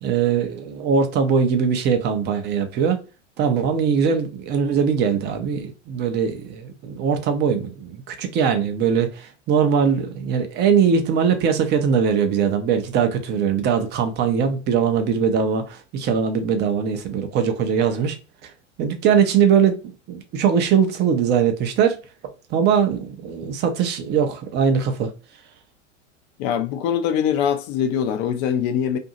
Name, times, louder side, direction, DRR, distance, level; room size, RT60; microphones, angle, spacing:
voice 1, 0.0-3.0 3.4-18.2 18.4-18.5 18.8-22.0 22.5-25.1, right 7 dB, 25° right, 0.6 m, -21 dB
voice 2, 26.4-29.0, left 8 dB, 35° left, 0.5 m, -23 dB
2.7 x 2.6 x 2.6 m
figure-of-eight pair, 95°, 38 cm